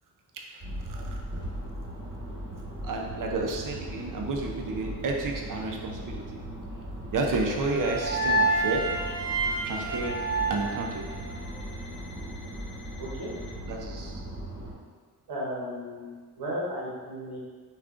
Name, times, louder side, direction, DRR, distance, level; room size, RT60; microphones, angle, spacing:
sound 1, 0.6-14.7, right 1 dB, 30° right, 1.4 m, -38 dB
voice 1, 2.8-6.2 7.1-8.9 9.6-10.2 10.5-11.1 13.7-14.2, right 3 dB, 55° right, 1 dB, 0.5 m, -31 dB
sound 2, 7.4-11.6, right 2 dB, 10° right, 0.7 m, -29 dB
Alarm, 7.5-13.6, left 3 dB, 30° left, 0.9 m, -50 dB
voice 2, 13.0-13.3 15.3-17.4, equal, 85° right, -5 dB, 0.9 m, -34 dB
3.5 x 2.4 x 2.4 m, 1.5 s
cardioid pair, 55°, 37 cm